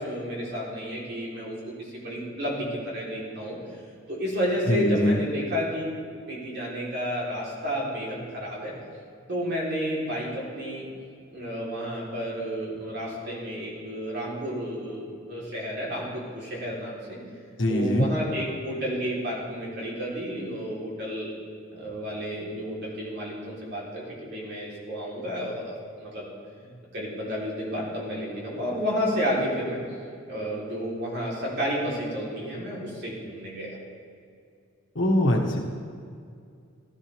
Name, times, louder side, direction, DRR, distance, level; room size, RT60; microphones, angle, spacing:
voice 1, 0.0-3.6 4.1-5.8 6.3-8.7 9.3-10.9 11.3-17.2 17.7-21.3 21.7-26.3 26.6-29.8 30.3-33.7, equal, 55° right, -5 dB, 3.9 m, -31 dB
voice 2, 4.7-5.2 17.6-18.1 34.9-35.6, left 1 dB, 65° left, 0 dB, 1.7 m, -22 dB
16.5 x 13.0 x 3.6 m, 2.3 s
head